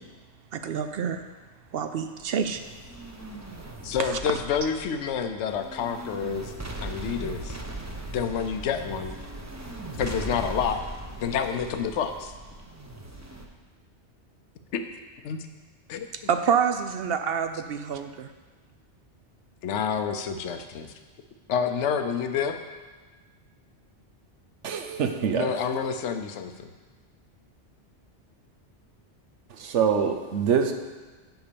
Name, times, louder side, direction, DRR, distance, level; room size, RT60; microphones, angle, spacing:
voice 1, 0.5-1.2 1.7-2.6 4.0-4.2 16.3-18.3, right 7 dB, 65° right, 8 dB, 0.7 m, -27 dB
sound 1, 2.2-13.4, right 2 dB, 15° right, 0.7 m, -39 dB
voice 2, 3.8-6.5 6.8-7.6 8.1-9.2 10.0-10.8 11.2-12.3 14.7-14.8 15.2-15.5 15.9-16.1 19.6-20.9 21.5-22.6 25.3-26.7, left 7 dB, 80° left, 7 dB, 1.0 m, -28 dB
voice 3, 24.6-25.5 29.5-30.7, right 7 dB, 90° right, 6 dB, 1.1 m, -25 dB
8.1 x 5.6 x 6.8 m, 1.3 s
omnidirectional pair, 1.2 m